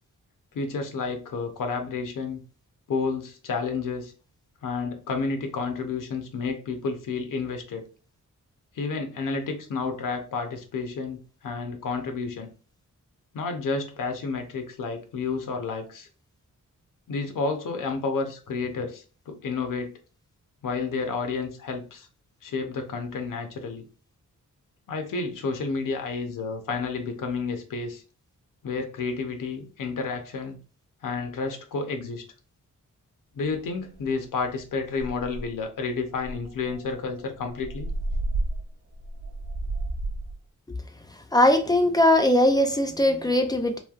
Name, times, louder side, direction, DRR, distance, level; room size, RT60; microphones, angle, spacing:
voice 1, 0.5-2.4 2.9-4.1 4.6-7.9 8.7-12.5 13.3-16.1 17.1-19.9 20.6-22.1 22.4-23.8 24.9-28.0 28.6-30.6 31.0-32.2 33.3-37.9, left 4 dB, 85° left, 0.7 m, -30 dB
sound 1, 34.0-34.2 34.6-34.7 34.9-35.6 36.2-40.4, right 2 dB, 50° right, 0.5 m, -32 dB
voice 2, 41.3-43.8, left 1 dB, 15° left, 0.3 m, -20 dB
3.2 x 2.6 x 2.3 m
wide cardioid pair, 160°, 32 cm